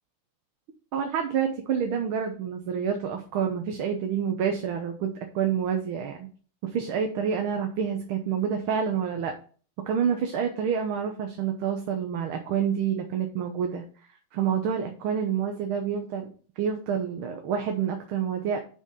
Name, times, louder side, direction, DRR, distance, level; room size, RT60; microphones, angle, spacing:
voice 1, 0.9-6.3 6.6-9.3 9.9-13.8 14.3-16.3 16.6-18.6, right 7 dB, 80° right, 4 dB, 1.8 m, -28 dB
6.1 x 5.5 x 6.5 m, 0.41 s
omnidirectional pair, 2.3 m